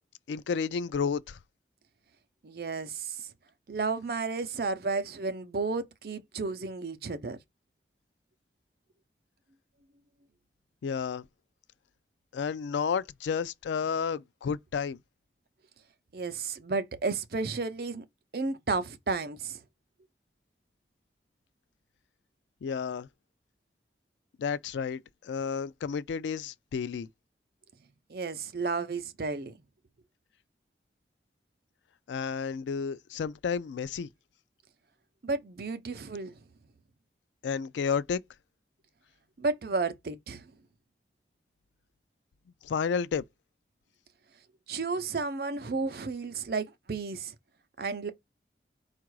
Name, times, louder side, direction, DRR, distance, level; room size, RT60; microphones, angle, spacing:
voice 1, 0.3-1.4 10.8-11.2 12.3-15.0 22.6-23.1 24.4-27.1 32.1-34.1 37.4-38.2 42.6-43.2, left 6 dB, 90° left, 0.3 m, -31 dB
voice 2, 2.4-3.3 3.7-7.4 16.1-18.0 18.3-19.6 28.1-29.6 35.2-36.4 39.4-40.5 44.7-47.3 47.8-48.1, right 4 dB, 55° right, 0.5 m, -32 dB
4.6 x 2.4 x 4.6 m
head